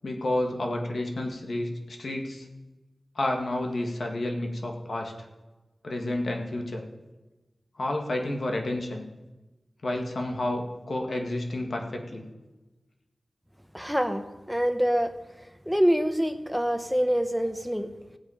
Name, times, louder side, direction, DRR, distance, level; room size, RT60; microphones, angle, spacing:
voice 1, 0.0-2.5 3.2-5.3 5.8-6.9 7.8-9.0 9.8-12.3, left 1 dB, 70° left, 2 dB, 1.9 m, -30 dB
voice 2, 13.7-15.1 15.7-17.9, equal, ahead, 8 dB, 1.1 m, -25 dB
16.5 x 8.2 x 5.0 m, 1.1 s
wide cardioid pair, 65°, 0 cm